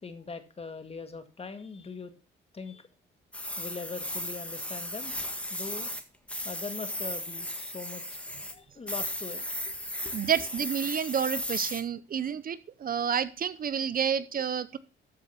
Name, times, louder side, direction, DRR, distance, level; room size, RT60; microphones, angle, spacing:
voice 1, 0.0-2.1 2.5-2.8 3.6-5.1 5.5-5.9 6.4-8.0 8.5-9.7 10.0-10.2, left 4 dB, 30° left, 9 dB, 2.0 m, -41 dB
sound 1, 3.3-6.0 6.3-8.5 8.9-11.8, left 1 dB, 5° left, 1.7 m, -36 dB
voice 2, 10.1-14.8, right 8 dB, 45° right, 16 dB, 0.7 m, -29 dB
13.5 x 5.3 x 5.9 m, 0.34 s
cardioid pair, 90°, 20 cm